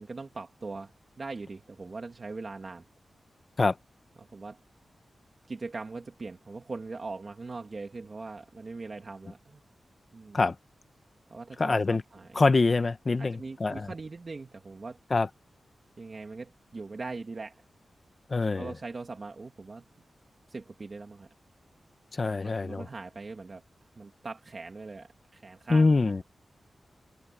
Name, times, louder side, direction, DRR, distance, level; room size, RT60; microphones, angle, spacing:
voice 1, 0.0-2.8 4.2-4.6 5.5-9.6 10.1-10.4 11.3-12.4 13.2-15.0 16.0-17.6 18.6-19.8 20.5-21.3 22.4-23.6 24.0-26.2, right 3 dB, 40° right, 1.9 m, -41 dB
voice 2, 11.6-12.0 12.3-13.9 15.1-15.3 18.3-18.7 22.1-22.8 25.7-26.2, left 3 dB, 35° left, 1.0 m, -24 dB
wide cardioid pair, 135°, 0 cm